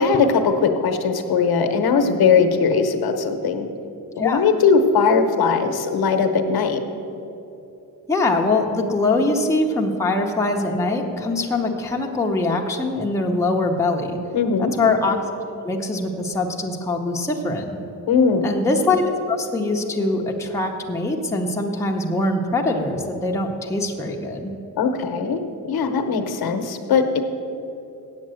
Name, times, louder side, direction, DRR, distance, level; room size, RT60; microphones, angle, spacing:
voice 1, 0.0-3.7 4.2-6.8 14.3-14.7 18.1-18.5 24.8-25.4 25.7-27.2, left 5 dB, 70° left, 7 dB, 0.9 m, -19 dB
voice 2, 8.1-14.2 14.6-15.2 15.6-17.7 18.4-19.0 19.3-24.5, left 2 dB, 10° left, 0 dB, 0.7 m, -23 dB
8.3 x 7.8 x 7.6 m, 2.9 s
wide cardioid pair, 155°, 38 cm